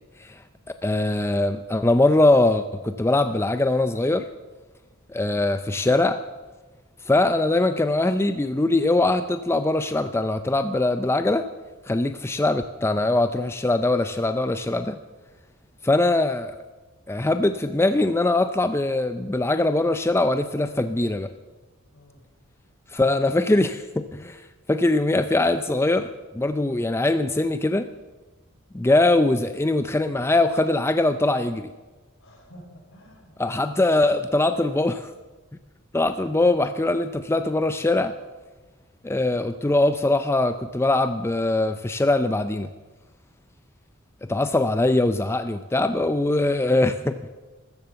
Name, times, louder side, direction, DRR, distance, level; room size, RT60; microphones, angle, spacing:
voice 1, 0.8-4.3 5.1-6.2 7.0-11.5 11.9-15.0 15.8-16.6 17.1-21.3 22.9-27.9 28.7-31.7 33.4-35.1 35.9-38.2 39.0-42.7 44.3-47.3, left 2 dB, 10° left, 10 dB, 0.5 m, -22 dB
voice 2, 21.9-22.2 32.2-33.5 36.1-36.3, equal, 65° left, 0 dB, 5.6 m, -50 dB
14.5 x 14.0 x 7.0 m, 1.2 s
head